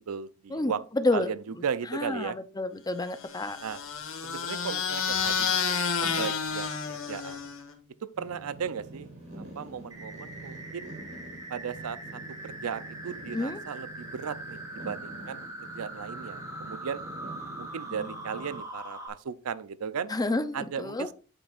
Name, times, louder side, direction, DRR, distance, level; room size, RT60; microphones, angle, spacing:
voice 1, 0.0-0.8 1.1-2.4 3.6-3.8 4.2-5.6 6.0-7.4 8.2-9.1 9.6-10.9 11.5-15.4 15.7-17.0 17.6-20.1 20.5-21.1, right 7 dB, 85° right, 0.5 m, -36 dB
voice 2, 0.5-1.3 1.9-3.6 6.0-6.3 13.3-13.6 17.9-18.0 20.1-21.1, left 2 dB, 15° left, 0.6 m, -30 dB
sound 1, 3.2-7.7, left 6 dB, 65° left, 1.3 m, -30 dB
sound 2, 8.1-18.6, right 2 dB, 60° right, 3.9 m, -46 dB
sound 3, 9.9-19.1, right 1 dB, 15° right, 2.1 m, -42 dB
8.6 x 7.8 x 2.4 m
head